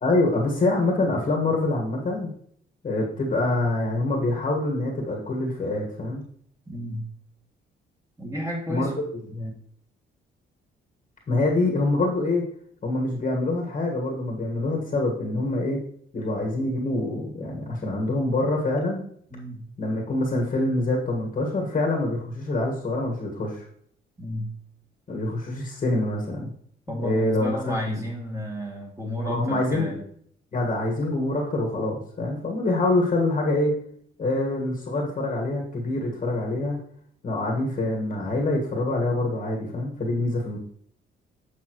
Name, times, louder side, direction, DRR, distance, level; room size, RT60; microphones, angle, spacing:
voice 1, 0.0-2.3 2.8-6.2 8.7-8.9 9.3-9.5 11.3-12.4 12.8-15.8 16.1-19.0 19.8-23.6 25.1-26.5 26.9-28.0 29.2-29.9 30.5-33.7 34.2-36.8 37.2-40.6, left 2 dB, 40° left, 0 dB, 1.6 m, -25 dB
voice 2, 6.7-7.1 8.2-8.9 19.3-19.6 24.2-24.5 26.9-30.0, equal, 15° right, -2 dB, 2.5 m, -32 dB
8.2 x 5.5 x 3.1 m, 0.63 s
cardioid pair, 90°, 20 cm